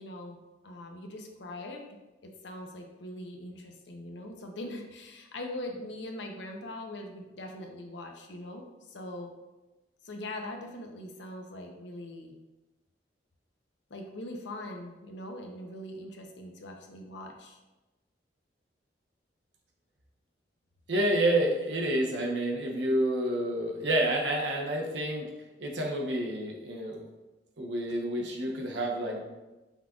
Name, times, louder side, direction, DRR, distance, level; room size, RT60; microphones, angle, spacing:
voice 1, 0.0-1.8 2.2-9.3 10.0-12.4 13.9-17.6, left 1 dB, 85° left, 3 dB, 0.7 m, -42 dB
voice 2, 20.9-25.3 25.6-27.0 27.6-29.2, right 1 dB, 80° right, 0 dB, 0.8 m, -29 dB
5.5 x 3.7 x 2.4 m, 1.1 s
head